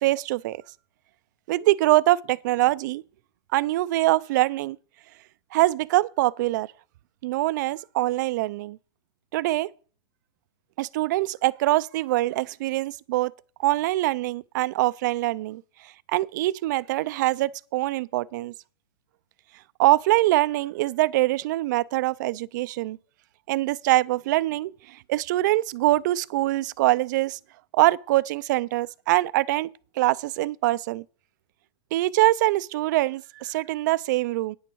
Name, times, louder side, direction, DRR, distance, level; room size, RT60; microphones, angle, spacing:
voice 1, 0.0-0.6 1.5-3.0 3.5-4.8 5.5-6.7 7.2-8.8 9.3-9.7 10.8-13.3 13.6-18.5 19.8-23.0 23.5-27.4 27.7-29.7 30.0-31.0 31.9-34.6, right 17 dB, 40° right, 0.5 m, -24 dB
9.7 x 9.1 x 4.6 m
hypercardioid pair, 160°, 15 cm